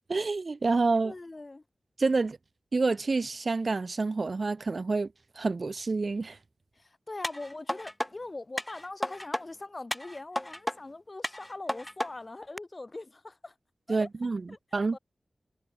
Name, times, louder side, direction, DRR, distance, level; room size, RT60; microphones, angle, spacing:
voice 1, 0.1-1.1 2.0-2.4 2.7-5.1 5.4-6.4 13.9-14.4 14.7-15.0, right 3 dB, 60° right, 2.9 m, -28 dB
voice 2, 1.0-1.6 6.7-13.5 13.9-14.1 14.5-15.0, left 2 dB, 40° left, 7.4 m, -42 dB
sound 1, 7.2-8.1 8.6-9.4 9.9-10.8 11.2-12.1 12.6-12.7, left 1 dB, 15° left, 2.6 m, -33 dB
cardioid pair, 40°, 0 cm